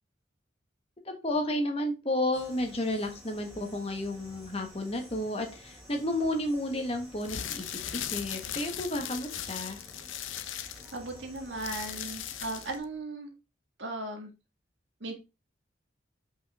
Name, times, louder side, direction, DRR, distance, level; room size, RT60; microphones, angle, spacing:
voice 1, 1.0-9.8, left 1 dB, 30° left, 4 dB, 1.4 m, -32 dB
sound 1, 2.3-12.8, equal, ahead, 2.9 m, -51 dB
sound 2, 7.2-12.8, left 10 dB, 85° left, 0.7 m, -38 dB
voice 2, 10.5-13.3 13.8-14.3 15.0-15.1, right 2 dB, 70° right, 3 dB, 1.8 m, -37 dB
5.5 x 5.5 x 3.5 m, 0.28 s
head